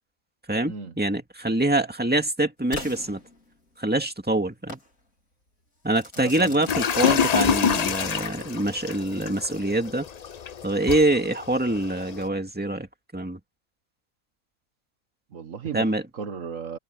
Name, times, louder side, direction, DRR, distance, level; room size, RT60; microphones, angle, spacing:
voice 1, 0.5-3.2 3.8-4.8 5.8-10.1 10.6-12.9 13.1-13.4 15.7-16.0, right 1 dB, 5° right, 2.1 m, -25 dB
Crackle / Fireworks, 2.7-3.9 4.7-4.9 5.9-7.9, left 2 dB, 85° left, 5.1 m, -40 dB
voice 2, 6.2-6.6 15.3-16.8, right 6 dB, 70° right, 1.7 m, -35 dB
sound 1, 6.7-12.3, left 7 dB, 45° left, 0.5 m, -27 dB
omnidirectional pair, 1.4 m